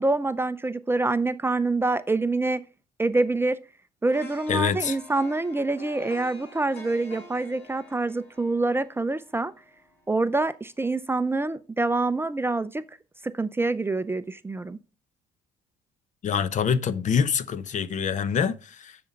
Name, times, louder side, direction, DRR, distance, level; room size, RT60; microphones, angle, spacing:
voice 1, 0.0-2.6 3.0-3.6 4.0-9.5 10.1-12.8 13.3-14.8, right 2 dB, 15° right, 0.5 m, -26 dB
sound 1, 4.1-10.1 10.5-10.6, left 2 dB, 80° left, 3.2 m, -47 dB
voice 2, 4.5-5.0 16.2-19.1, left 7 dB, 45° left, 0.8 m, -25 dB
7.0 x 6.9 x 5.2 m
cardioid pair, 110°, 17 cm